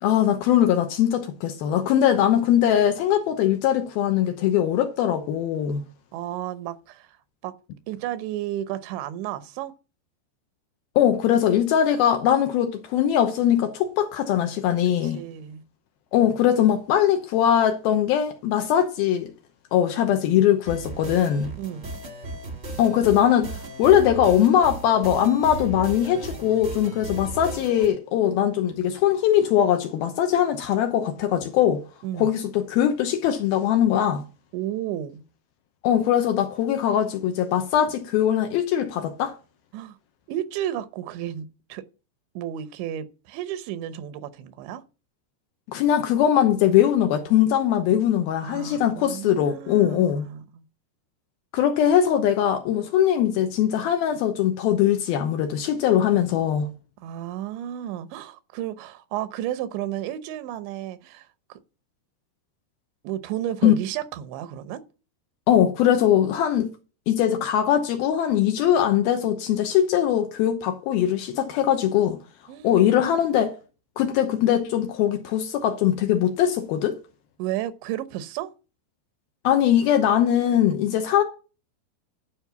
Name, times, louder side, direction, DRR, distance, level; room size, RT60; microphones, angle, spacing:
voice 1, 0.0-5.8 11.0-15.2 16.1-19.3 19.7-21.5 22.8-23.5 23.8-31.8 32.2-34.2 35.8-39.3 45.7-50.3 51.5-56.7 63.6-63.7 65.5-66.7 67.1-72.2 72.6-73.5 74.0-77.0 79.4-81.2, left 10 dB, 75° left, 2.4 m, -21 dB
voice 2, 6.1-7.1 7.4-7.5 7.9-9.7 15.0-15.6 19.9-20.0 21.6-21.9 32.0-32.3 34.5-35.2 39.7-40.0 40.3-41.8 42.4-44.8 48.4-50.6 57.0-61.6 63.0-64.8 72.5-72.8 77.4-78.5, right 12 dB, 85° right, 3.2 m, -32 dB
sound 1, 20.7-27.9, right 2 dB, 40° right, 0.9 m, -36 dB
12.0 x 5.4 x 6.9 m
omnidirectional pair, 5.1 m